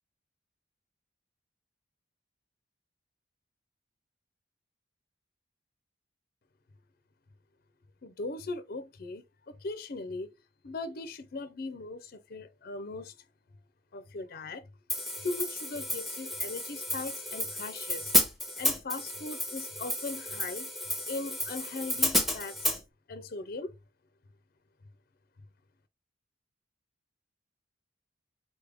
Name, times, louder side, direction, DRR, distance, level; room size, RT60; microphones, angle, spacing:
voice 1, 8.0-10.3 10.6-13.2 13.9-14.7 15.2-18.1 18.6-20.7 21.1-22.8 23.1-23.7, left 3 dB, 50° left, 0.5 m, -39 dB
Hi-hat, 14.9-22.8, left 1 dB, ahead, 0.8 m, -31 dB
4.2 x 3.4 x 3.4 m
head